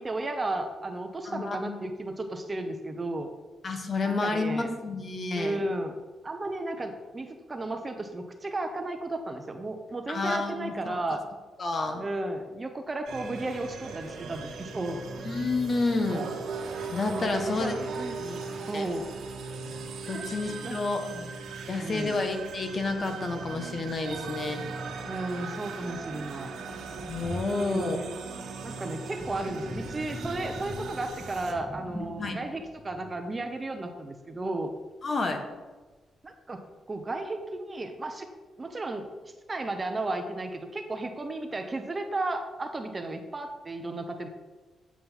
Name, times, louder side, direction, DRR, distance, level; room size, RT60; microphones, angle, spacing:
voice 1, 0.0-3.3 4.0-4.7 5.3-6.0 6.2-11.2 12.0-15.0 17.1-18.2 18.7-19.1 20.1-20.8 21.1-21.3 21.8-22.2 25.0-26.5 27.6-28.1 28.6-34.7 36.2-36.6 36.9-38.3 38.6-39.1 39.5-44.3, right 2 dB, 25° right, 5 dB, 0.9 m, -34 dB
voice 2, 1.2-1.8 3.6-5.6 10.1-11.0 11.6-12.0 15.2-16.3 16.9-17.7 18.2-18.4 18.7-18.9 20.1-21.0 21.7-24.6 27.0-28.0 32.2-32.4 35.0-35.4, left 3 dB, 40° left, 5 dB, 1.4 m, -30 dB
sound 1, 13.1-31.5, right 4 dB, 80° right, 1.4 m, -38 dB
Sink (filling or washing), 26.7-34.0, left 1 dB, 5° left, 1.3 m, -42 dB
9.0 x 7.4 x 5.7 m, 1.3 s
cardioid pair, 125°, 0 cm